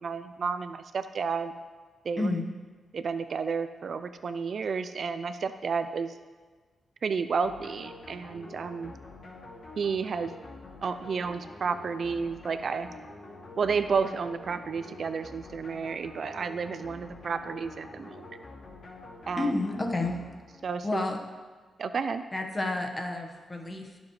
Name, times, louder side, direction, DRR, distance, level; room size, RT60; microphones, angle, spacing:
voice 1, 0.0-1.5 2.0-2.4 2.9-6.2 7.0-8.9 9.8-10.3 10.8-12.9 13.6-18.2 19.3-19.6 20.6-21.0 21.8-22.2, right 5 dB, 50° right, 10 dB, 0.4 m, -31 dB
sound 1, 7.4-20.7, left 2 dB, 55° left, 2.3 m, -46 dB
voice 2, 19.4-20.2 20.8-21.2 22.3-24.0, left 2 dB, 20° left, 3 dB, 1.3 m, -30 dB
21.0 x 7.3 x 3.2 m, 1.4 s
wide cardioid pair, 125°, 0 cm